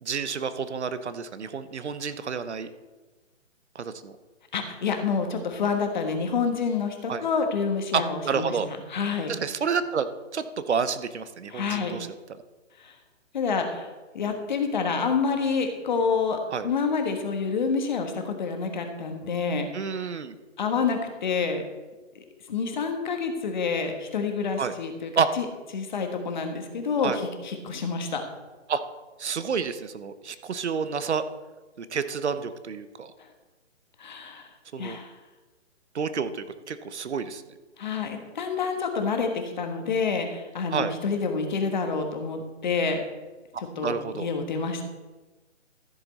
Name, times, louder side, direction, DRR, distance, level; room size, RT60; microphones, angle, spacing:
voice 1, 0.0-2.7 3.7-4.2 7.1-7.2 7.9-8.7 9.3-10.1 10.3-12.1 16.5-16.7 19.7-20.3 24.6-24.7 25.2-25.3 27.0-27.2 28.7-28.8 29.2-31.2 31.8-33.1 34.7-35.0 35.9-37.4 40.7-40.9 43.8-44.3, right 6 dB, 60° right, 12 dB, 0.9 m, -29 dB
voice 2, 4.5-9.3 11.5-12.0 12.8-12.9 13.3-13.9 14.1-19.7 20.6-21.6 22.1-25.1 25.4-25.5 25.7-28.2 34.0-34.5 34.8-35.1 37.8-43.0 43.8-44.8, left 5 dB, 40° left, 5 dB, 1.3 m, -28 dB
14.0 x 7.2 x 4.1 m, 1.2 s
hypercardioid pair, 160°, 37 cm